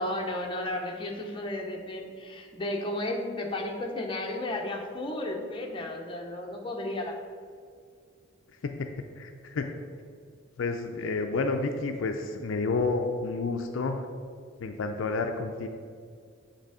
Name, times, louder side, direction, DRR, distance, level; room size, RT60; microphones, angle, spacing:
voice 1, 0.0-7.1, left 1 dB, 25° left, 1 dB, 0.7 m, -33 dB
voice 2, 8.6-9.7 10.6-14.0 14.6-15.7, left 3 dB, 65° left, 5 dB, 0.4 m, -30 dB
8.1 x 3.4 x 4.8 m, 2.2 s
head